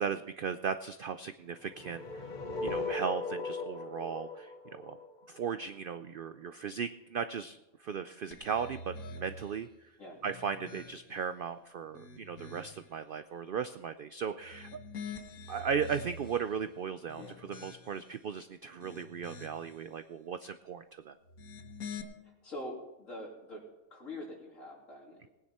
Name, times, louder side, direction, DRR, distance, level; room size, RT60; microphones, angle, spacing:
voice 1, 0.0-2.3 2.6-5.0 5.3-9.7 10.2-14.7 15.5-21.2, right 7 dB, 75° right, 10 dB, 0.5 m, -37 dB
sound 1, 1.7-5.8, left 3 dB, 40° left, 0.9 m, -38 dB
sound 2, 8.3-9.6 10.1-11.3 11.8-12.9 14.4-16.5 17.0-18.2 18.6-19.8 21.2-22.0, left 3 dB, 80° left, 1.8 m, -46 dB
voice 2, 22.2-23.6 23.9-25.3, left 1 dB, 65° left, -2 dB, 3.4 m, -44 dB
19.0 x 9.5 x 4.2 m, 0.98 s
omnidirectional pair, 1.5 m